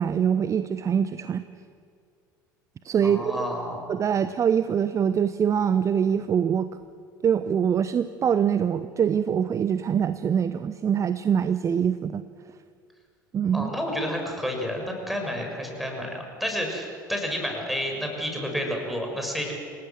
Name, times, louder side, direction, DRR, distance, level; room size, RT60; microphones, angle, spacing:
voice 1, 0.0-1.4 2.8-3.5 3.9-6.8 7.2-12.2 13.3-13.7, right 8 dB, 30° right, 13 dB, 0.8 m, -24 dB
voice 2, 3.0-3.8 13.5-19.5, equal, ahead, 2 dB, 6.7 m, -30 dB
28.0 x 19.0 x 7.6 m, 2.2 s
figure-of-eight pair, 70°, 11 cm